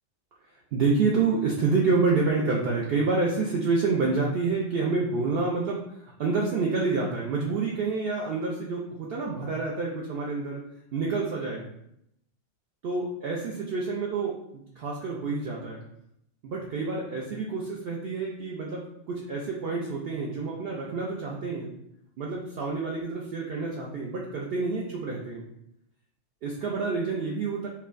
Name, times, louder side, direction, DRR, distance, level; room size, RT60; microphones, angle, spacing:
voice 1, 0.7-10.6 10.9-11.7 12.8-15.8 16.4-21.7 22.2-25.4 26.4-27.7, right 4 dB, 65° right, -2 dB, 0.6 m, -28 dB
4.4 x 2.2 x 2.4 m, 0.77 s
omnidirectional pair, 1.3 m